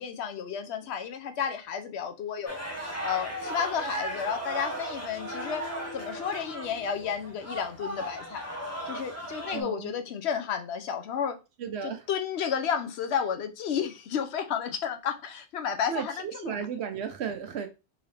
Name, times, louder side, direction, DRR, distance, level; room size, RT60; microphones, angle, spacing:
voice 1, 0.0-2.6 3.0-5.6 5.9-8.5 8.9-11.4 11.8-16.6, left 7 dB, 70° left, 0.9 m, -32 dB
sound 1, 2.5-9.6, right 1 dB, 15° left, 0.7 m, -36 dB
voice 2, 9.5-9.9 11.6-12.1 15.9-17.7, right 7 dB, 70° right, 1.0 m, -34 dB
3.9 x 2.8 x 3.2 m
omnidirectional pair, 1.2 m